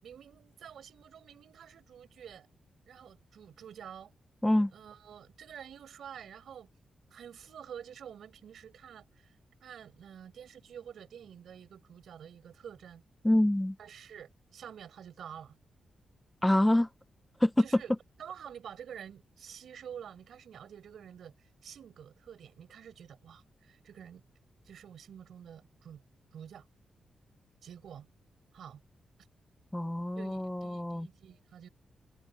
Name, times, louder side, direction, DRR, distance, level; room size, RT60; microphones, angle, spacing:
voice 1, 0.0-2.5 2.9-4.1 4.7-6.7 7.1-13.0 13.8-15.6 17.6-17.9 18.2-24.2 24.6-26.0 26.3-26.7 27.6-28.1 28.5-28.8 30.2-31.7, right 8 dB, 70° right, 7.6 m, -49 dB
voice 2, 13.2-13.8 16.4-16.9 17.4-17.5 29.7-31.1, left 1 dB, 5° left, 0.8 m, -26 dB
wide cardioid pair, 170°, 0 cm